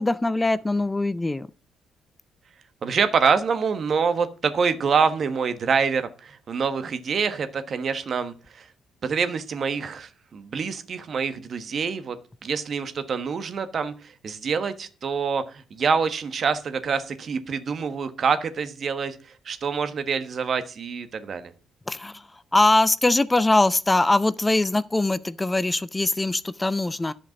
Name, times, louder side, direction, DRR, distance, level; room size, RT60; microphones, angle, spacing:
voice 1, 0.0-1.5 21.9-22.2 22.5-27.1, left 2 dB, 20° left, 0.6 m, -22 dB
voice 2, 2.8-8.7 9.0-12.2 12.4-21.5, right 5 dB, 55° right, 1.3 m, -26 dB
10.5 x 5.2 x 7.0 m
supercardioid pair, 60°, 0 cm